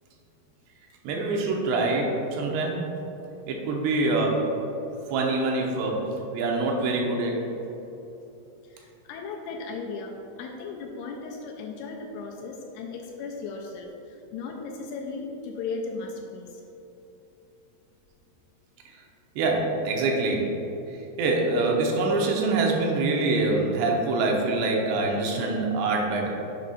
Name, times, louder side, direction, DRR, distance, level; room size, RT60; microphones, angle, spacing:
voice 1, 1.0-2.9 3.5-4.5 5.1-7.5 18.9-19.0 19.4-20.5 20.9-26.3, right 2 dB, 80° right, 0 dB, 2.9 m, -25 dB
voice 2, 8.7-16.5, left 4 dB, 85° left, 1 dB, 2.5 m, -36 dB
7.5 x 5.3 x 4.1 m, 2.9 s
omnidirectional pair, 5.0 m